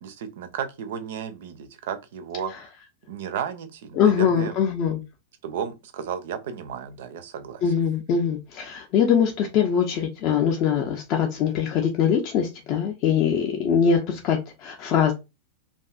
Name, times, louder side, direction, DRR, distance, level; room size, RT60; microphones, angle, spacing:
voice 1, 0.0-2.5 3.1-4.5 5.4-7.7, right 8 dB, 55° right, 0.4 m, -33 dB
voice 2, 3.9-5.0 7.6-15.1, left 7 dB, 40° left, 0.5 m, -22 dB
2.6 x 2.3 x 2.3 m
figure-of-eight pair, 90°, 0 cm